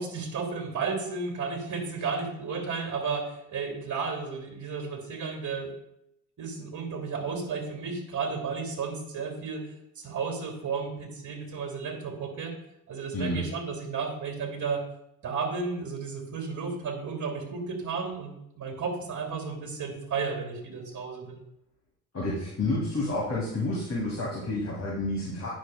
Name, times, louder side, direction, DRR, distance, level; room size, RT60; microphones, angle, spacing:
voice 1, 0.0-5.7 6.4-12.6 12.9-14.8 15.2-21.4, right 5 dB, 40° right, 4 dB, 2.2 m, -33 dB
voice 2, 22.1-25.5, left 2 dB, 35° left, -5 dB, 2.5 m, -30 dB
9.7 x 6.2 x 2.2 m, 0.80 s
hypercardioid pair, 60°, 45 cm